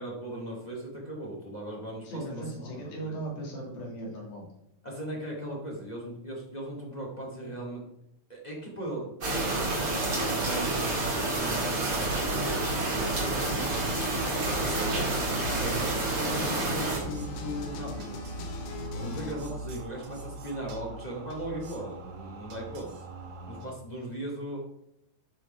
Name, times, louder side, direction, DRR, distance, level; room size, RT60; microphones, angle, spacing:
voice 1, 0.0-3.2 4.8-7.8 8.3-13.6 14.1-18.2 18.9-23.0 23.5-24.6, right 1 dB, 20° left, -3 dB, 1.2 m, -38 dB
voice 2, 2.0-4.4 19.0-19.1, right 1 dB, 65° left, -3 dB, 4.6 m, -38 dB
sound 1, 9.2-17.0, right 2 dB, 30° right, 2.8 m, -29 dB
sound 2, 12.4-23.7, right 2 dB, 60° right, 2.2 m, -42 dB
sound 3, 13.4-19.4, left 2 dB, 90° left, 3.1 m, -40 dB
11.5 x 5.1 x 4.9 m, 0.78 s
omnidirectional pair, 4.5 m